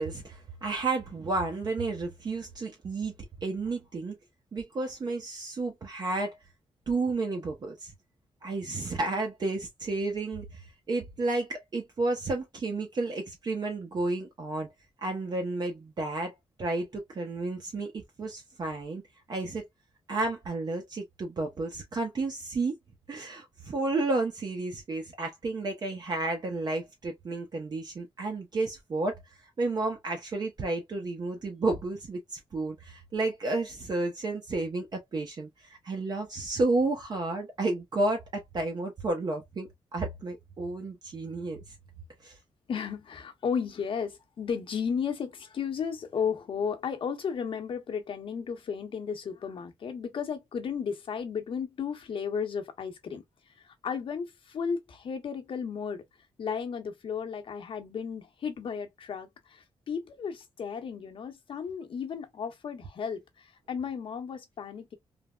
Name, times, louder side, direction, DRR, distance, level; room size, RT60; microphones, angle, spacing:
voice 1, 0.0-3.1 3.4-4.2 4.5-6.4 6.9-7.9 8.4-14.7 15.0-16.3 16.6-19.0 19.3-19.6 20.1-22.7 23.1-29.2 29.6-41.6 42.2-42.4, right 2 dB, 45° right, 0.7 m, -31 dB
voice 2, 42.7-53.2 53.6-56.0 56.4-65.0, left 6 dB, 60° left, 0.9 m, -34 dB
3.4 x 2.1 x 2.2 m
cardioid pair, 95°, 10 cm